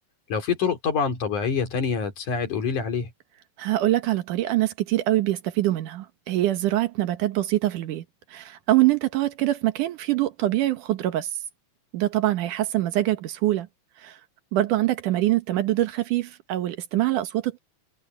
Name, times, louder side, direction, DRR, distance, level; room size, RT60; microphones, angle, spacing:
voice 1, 0.3-3.1, left 6 dB, 75° left, 4.9 m, -26 dB
voice 2, 3.6-8.0 8.3-11.3 11.9-13.7 14.0-14.2 14.5-17.6, right 15 dB, 85° right, 2.8 m, -24 dB
omnidirectional pair, 3.5 m